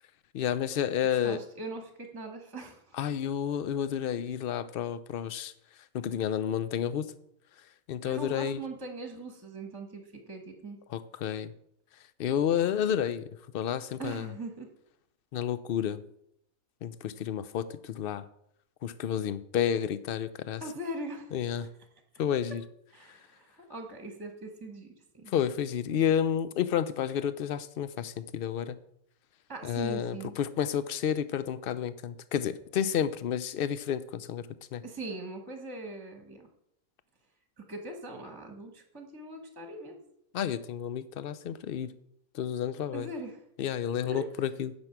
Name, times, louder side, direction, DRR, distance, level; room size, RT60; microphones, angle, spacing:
voice 1, 0.3-1.4 3.0-5.5 5.9-7.1 7.9-8.6 10.9-11.5 12.2-13.2 13.5-14.3 15.3-16.0 16.8-18.2 18.8-20.6 21.3-21.7 22.2-22.6 25.3-28.8 29.6-34.4 34.7-34.8 40.3-41.9 42.3-43.1 43.6-44.7, left 9 dB, 60° left, 14 dB, 0.6 m, -30 dB
voice 2, 1.0-3.0 8.0-10.8 14.0-14.7 20.6-21.3 22.9-25.3 29.5-30.3 34.8-36.5 37.6-40.0 42.9-43.4 44.1-44.2, right 2 dB, 15° right, 4 dB, 1.3 m, -41 dB
9.6 x 6.1 x 5.9 m, 0.74 s
omnidirectional pair, 1.5 m